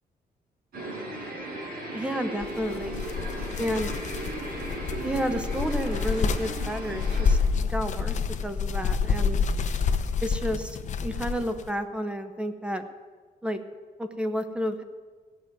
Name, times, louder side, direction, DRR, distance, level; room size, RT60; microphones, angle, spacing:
sound 1, 0.7-7.4, right 1 dB, 70° right, 5.0 m, -37 dB
voice 1, 1.9-3.0 3.6-3.9 5.0-7.4 7.7-8.2 8.4-9.4 10.2-10.8 11.0-12.8 13.4-13.6 14.0-14.8, equal, 5° right, 8 dB, 0.8 m, -31 dB
sound 2, 2.4-11.7, left 5 dB, 50° left, 0.8 m, -28 dB
16.5 x 6.2 x 9.1 m, 1.4 s
cardioid pair, 155°, 16 cm